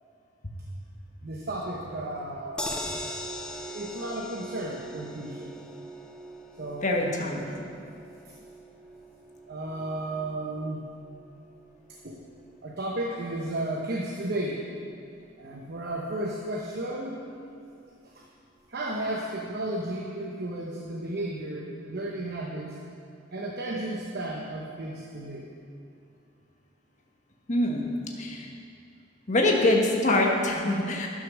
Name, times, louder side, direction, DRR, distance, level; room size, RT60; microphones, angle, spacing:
voice 1, 1.2-2.8 3.7-5.5 6.6-7.4 9.5-10.8 12.0-12.2 12.6-14.7 15.4-17.2 18.1-18.3 18.7-22.8 23.3-25.5, right 1 dB, 55° right, -1 dB, 0.9 m, -33 dB
sound 1, 2.6-14.8 15.2-15.3 15.6-15.7, equal, 5° left, 0.6 m, -42 dB
voice 2, 6.8-7.6 27.5-27.8 28.2-28.5 29.3-31.1, left 1 dB, 40° left, 0 dB, 1.3 m, -24 dB
11.5 x 6.3 x 6.3 m, 2.6 s
head